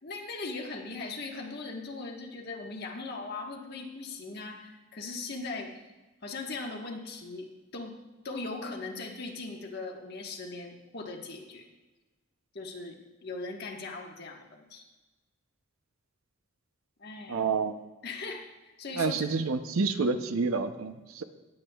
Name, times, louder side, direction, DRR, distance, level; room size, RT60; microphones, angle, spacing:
voice 1, 0.0-5.7 6.2-8.0 8.2-11.7 12.5-14.8 17.0-17.4 18.0-18.4 18.8-19.4, left 3 dB, 50° left, 0 dB, 1.4 m, -39 dB
voice 2, 17.3-17.8 19.0-21.2, right 4 dB, 85° right, 9 dB, 0.6 m, -28 dB
19.0 x 8.0 x 2.3 m, 1.2 s
head